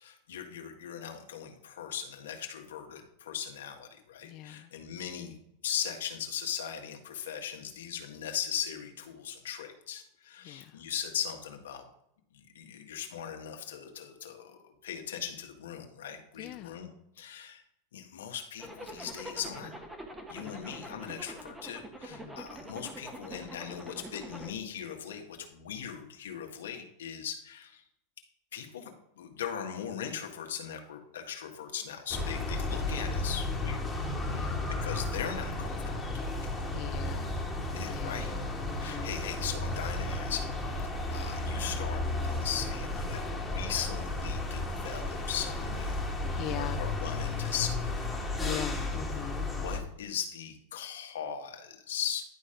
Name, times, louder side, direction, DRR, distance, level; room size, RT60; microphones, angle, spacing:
voice 1, 0.0-5.4 5.6-11.8 12.3-17.6 17.9-19.8 20.3-27.8 28.5-33.8 34.7-36.3 37.7-38.3 38.8-40.5 40.8-46.1 46.5-48.1 48.3-49.0 49.5-52.2, left 8 dB, 85° left, 4 dB, 1.6 m, -39 dB
voice 2, 4.2-4.7 10.4-10.7 16.4-16.9 20.4-20.6 22.2-22.4 34.3-34.7 36.7-37.4 37.8-38.2 38.7-39.1 46.3-46.8 48.4-49.5, left 13 dB, 45° left, 9 dB, 0.3 m, -40 dB
Zipper (clothing), 18.6-24.5, right 1 dB, 10° right, 1.3 m, -45 dB
sound 1, 32.1-49.8, left 2 dB, 5° left, 1.8 m, -33 dB
11.0 x 4.1 x 5.1 m, 0.78 s
hypercardioid pair, 120°, 0 cm